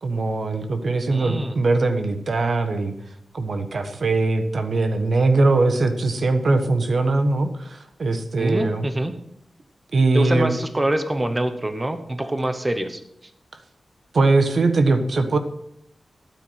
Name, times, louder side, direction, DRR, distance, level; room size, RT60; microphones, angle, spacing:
voice 1, 0.0-2.9 3.3-8.9 9.9-10.6 14.1-15.4, right 3 dB, 55° right, 7 dB, 1.3 m, -21 dB
voice 2, 1.1-1.5 8.4-9.1 10.1-13.0, right 1 dB, 15° right, 8 dB, 1.0 m, -25 dB
13.0 x 9.4 x 5.7 m, 0.76 s
wide cardioid pair, 175°, 0 cm